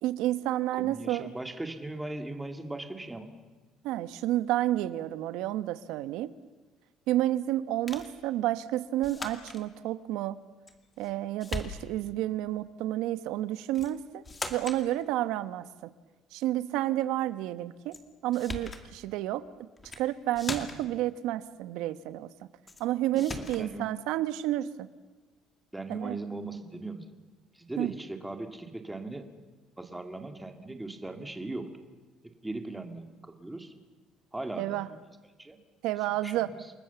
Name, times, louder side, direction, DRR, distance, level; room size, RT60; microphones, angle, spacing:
voice 1, 0.0-1.3 3.8-6.3 7.1-10.4 11.0-14.2 14.5-15.7 16.3-18.0 18.2-19.4 20.0-22.3 22.8-24.9 25.9-26.2 27.8-28.0 34.6-34.9 35.8-36.5, right 14 dB, 90° right, 13 dB, 1.2 m, -30 dB
voice 2, 0.8-3.3 23.1-23.2 23.6-23.9 25.7-27.1 27.5-29.3 29.8-31.7 32.2-33.7 34.3-35.0 35.3-35.6 36.2-36.6, right 2 dB, 10° right, 6 dB, 2.3 m, -39 dB
sound 1, 7.9-8.1 9.0-9.6 10.7-11.1 11.4-12.1 13.7-13.9 14.2-14.8 17.9-18.0 18.3-18.8 19.8-20.0 20.3-21.0 22.7-22.8 23.2-23.7, left 3 dB, 20° left, 2.3 m, -39 dB
29.0 x 20.5 x 7.1 m, 1.3 s
cardioid pair, 150°, 0 cm